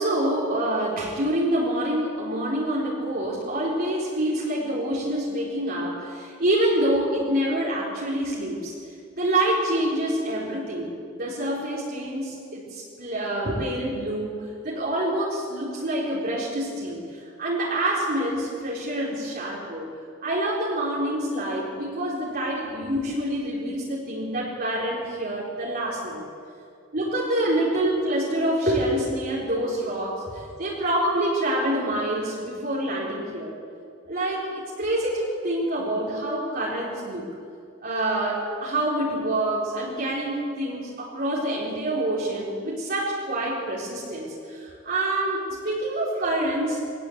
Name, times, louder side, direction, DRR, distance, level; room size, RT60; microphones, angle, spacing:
voice 1, 0.0-8.7 9.1-19.9 20.2-26.2 26.9-33.5 34.1-37.3 37.8-46.8, right 1 dB, 50° right, -6 dB, 4.3 m, -26 dB
22.0 x 18.5 x 8.2 m, 2.5 s
head